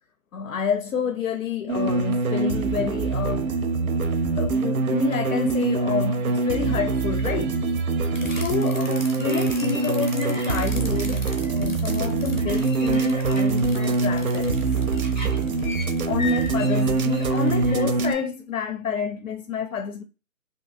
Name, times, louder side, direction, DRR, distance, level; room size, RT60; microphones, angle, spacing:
voice 1, 0.3-3.6 3.9-4.0 4.4-7.6 8.2-14.7 15.9-20.0, left 6 dB, 85° left, 0.6 m, -29 dB
sound 1, 1.7-18.1, right 3 dB, 90° right, 0.7 m, -24 dB
sound 2, 8.1-18.2, left 2 dB, 35° left, 0.5 m, -38 dB
2.8 x 2.6 x 2.5 m
hypercardioid pair, 175°, 42 cm